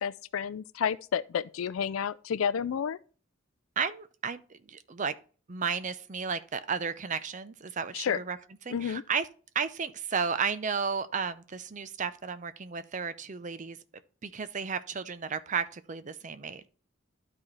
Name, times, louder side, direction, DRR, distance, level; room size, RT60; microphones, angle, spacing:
voice 1, 0.0-3.0 7.9-8.2 8.7-9.0, left 7 dB, 85° left, 0.4 m, -30 dB
voice 2, 3.8-4.4 4.7-5.1 5.5-8.4 8.7-9.3 9.5-13.8 14.2-16.7, right 6 dB, 35° right, 0.6 m, -33 dB
12.0 x 4.2 x 3.2 m
head